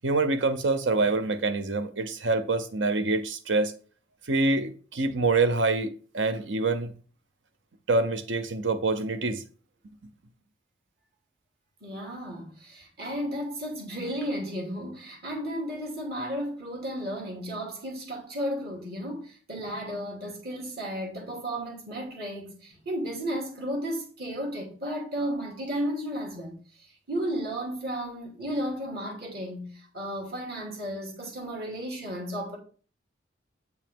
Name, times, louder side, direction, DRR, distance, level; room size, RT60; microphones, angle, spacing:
voice 1, 0.0-3.7 4.3-6.9 7.9-9.4, right 3 dB, 80° right, 0.9 m, -26 dB
voice 2, 11.8-26.6 27.1-32.6, equal, 55° right, 2.5 m, -33 dB
8.0 x 5.3 x 3.6 m
head